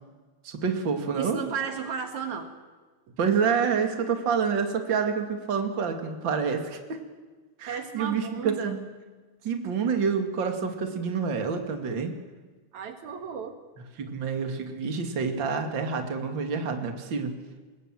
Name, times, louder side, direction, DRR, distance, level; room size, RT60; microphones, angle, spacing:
voice 1, 0.4-1.4 3.2-7.0 7.6-8.8 9.4-12.1 14.0-17.3, right 6 dB, 40° right, 5 dB, 2.8 m, -28 dB
voice 2, 1.2-2.5 3.1-3.2 7.7-8.8 12.7-13.6, right 7 dB, 70° right, 6 dB, 2.9 m, -34 dB
26.5 x 21.5 x 7.7 m, 1.4 s
omnidirectional pair, 3.5 m